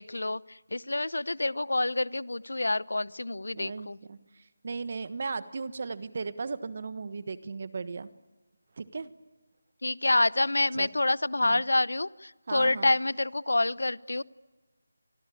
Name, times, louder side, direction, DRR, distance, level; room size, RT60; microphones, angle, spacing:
voice 1, 0.0-4.0 9.8-14.2, left 2 dB, 85° left, 21 dB, 0.8 m, -27 dB
voice 2, 3.5-8.1 8.8-9.1 10.7-10.9 11.4-11.6 12.5-12.9, right 4 dB, 45° right, 14 dB, 1.3 m, -36 dB
27.0 x 23.0 x 8.5 m, 1.2 s
figure-of-eight pair, 170°, 0 cm